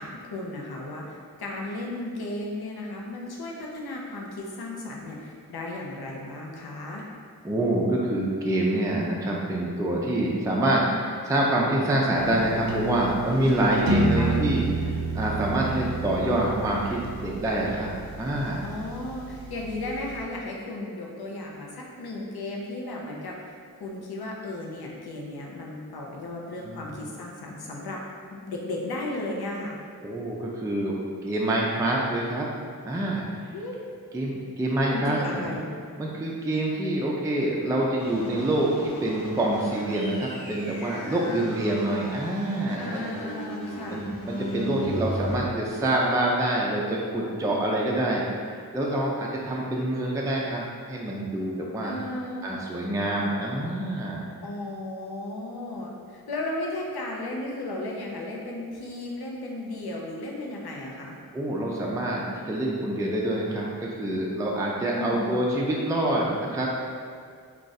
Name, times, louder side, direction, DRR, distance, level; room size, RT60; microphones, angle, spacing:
voice 1, 0.0-7.1 13.4-14.4 18.6-28.0 28.3-29.8 33.5-33.8 34.9-35.6 42.8-44.0 51.8-52.5 54.4-61.2 64.8-65.3, left 2 dB, 70° left, -2 dB, 0.6 m, -35 dB
voice 2, 7.4-17.9 18.2-18.7 26.6-26.9 30.0-31.0 31.2-32.5 32.8-33.3 34.1-35.5 36.0-43.1 43.9-52.0 52.4-54.3 61.3-66.7, right 1 dB, 10° right, -3 dB, 0.4 m, -26 dB
sound 1, 12.1-20.2, right 2 dB, 65° right, 0.5 m, -31 dB
sound 2, 38.0-45.4, equal, 50° left, 1.4 m, -36 dB
2.4 x 2.4 x 4.0 m, 2.1 s
cardioid pair, 50°, 39 cm